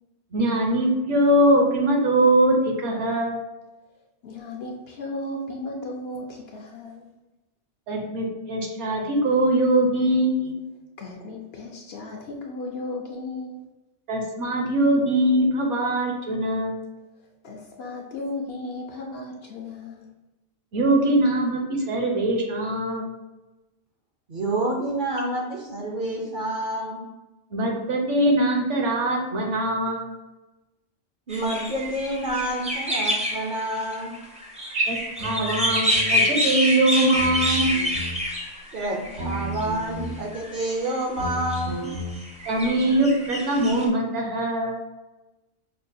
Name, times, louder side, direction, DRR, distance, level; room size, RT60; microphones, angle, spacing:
voice 1, 0.3-3.4 7.9-10.6 14.1-16.7 20.7-21.6 21.9-23.1 27.5-30.1 34.7-37.9 42.5-44.8, right 1 dB, 70° right, 0 dB, 1.1 m, -22 dB
voice 2, 4.2-7.1 11.0-13.6 17.4-20.1, left 2 dB, 65° left, 1 dB, 0.7 m, -35 dB
voice 3, 24.3-27.0 31.3-34.1 38.7-41.9, right 1 dB, 50° right, -1 dB, 0.6 m, -28 dB
sound 1, 31.3-39.7 40.3-41.0 41.5-43.8, left 1 dB, 10° right, 0.4 m, -27 dB
sound 2, 35.2-36.2 37.2-38.2 39.2-40.2 41.2-42.1, equal, 85° right, 1.8 m, -33 dB
5.5 x 2.3 x 2.6 m, 1.0 s
omnidirectional pair, 1.3 m